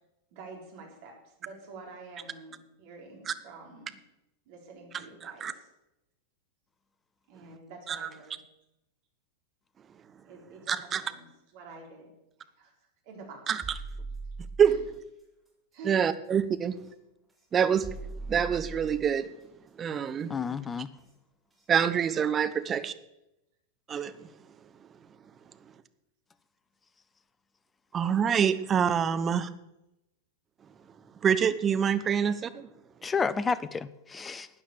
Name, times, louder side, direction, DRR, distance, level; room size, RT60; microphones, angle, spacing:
voice 1, 0.3-3.9 4.5-5.7 7.3-8.4 10.3-11.3 11.5-12.1 12.4-12.7 13.0-13.4 14.6-14.8 15.7-16.0, right 3 dB, 50° right, 0 dB, 4.2 m, -47 dB
voice 2, 10.7-11.0 13.5-13.6 14.6-14.8 15.8-16.8 17.5-17.9 18.3-19.3 19.8-20.3 21.7-22.9 23.9-24.1 27.9-29.5 31.2-32.7, right 7 dB, 25° right, 11 dB, 0.9 m, -26 dB
sound 1, 13.6-14.9 16.8-16.9 17.8-19.2 21.0-21.1 21.6-21.7, right 3 dB, 5° right, 3.8 m, -40 dB
voice 3, 20.3-20.9 33.0-34.5, left 5 dB, 15° left, 16 dB, 0.6 m, -30 dB
12.5 x 9.1 x 7.0 m, 0.91 s
figure-of-eight pair, 90°, 0 cm